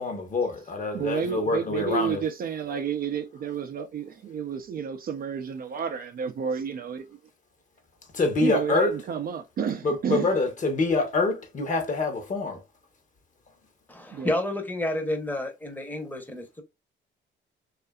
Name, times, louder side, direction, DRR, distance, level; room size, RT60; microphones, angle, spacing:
voice 1, 0.0-2.2 8.1-8.9 9.8-12.6, left 3 dB, 40° left, 0.9 m, -26 dB
voice 2, 0.9-7.1 8.4-10.4 14.1-14.3, right 7 dB, 50° right, 0.4 m, -31 dB
voice 3, 13.9-16.6, left 1 dB, 10° left, 0.8 m, -30 dB
2.6 x 2.4 x 2.2 m
cardioid pair, 90°, 20 cm